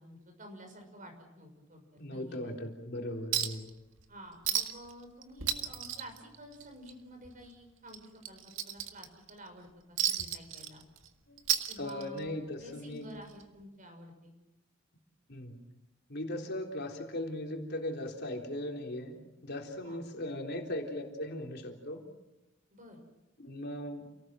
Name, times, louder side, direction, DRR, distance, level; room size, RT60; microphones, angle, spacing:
voice 1, 0.0-2.7 4.1-10.8 11.7-12.3 12.6-14.3 19.8-20.0 22.7-23.0, equal, 40° right, 4 dB, 6.3 m, -50 dB
voice 2, 2.0-3.7 11.3-11.4 11.8-13.1 15.3-15.6 16.1-22.0 23.4-24.1, left 1 dB, 55° left, 1 dB, 3.6 m, -38 dB
Chink clink, 3.3-3.7 4.0-4.1 4.4-4.9 5.2-6.9 7.2-7.4 7.9-9.3 10.0-11.1 11.4-12.3 13.4-13.5, right 10 dB, 85° right, 1.8 m, -33 dB
29.5 x 18.5 x 7.6 m, 0.98 s
head